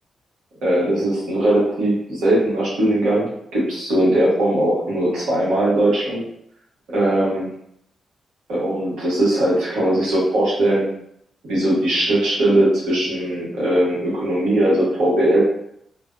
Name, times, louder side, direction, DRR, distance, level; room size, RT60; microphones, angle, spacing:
voice 1, 0.6-6.2 6.9-7.5 8.5-10.9 11.5-15.4, right 1 dB, 80° right, -7 dB, 1.2 m, -19 dB
2.5 x 2.3 x 2.5 m, 0.73 s
supercardioid pair, 45°, 0 cm